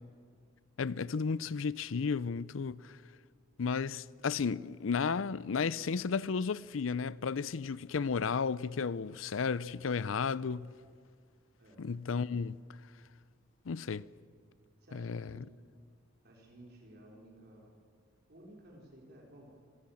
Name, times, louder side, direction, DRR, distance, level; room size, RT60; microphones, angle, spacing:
voice 1, 0.8-3.0 3.6-10.7 11.8-12.6 13.7-14.1 14.9-15.3, left 5 dB, 85° left, 0.5 m, -33 dB
voice 2, 14.8-15.6 16.2-17.8 18.3-19.5, right 1 dB, 55° right, 4.1 m, -55 dB
25.5 x 18.0 x 7.2 m
head